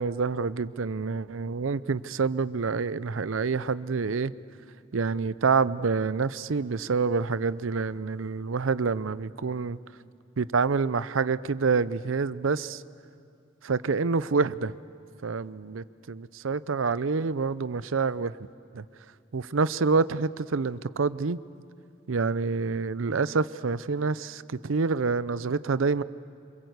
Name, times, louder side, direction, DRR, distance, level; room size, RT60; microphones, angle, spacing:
voice 1, 0.0-4.3 4.9-9.8 10.4-12.8 13.6-14.7 15.2-18.3 18.7-18.8 19.3-21.4 22.1-26.0, right 4 dB, 70° right, 0.6 m, -27 dB
26.5 x 24.0 x 8.1 m
head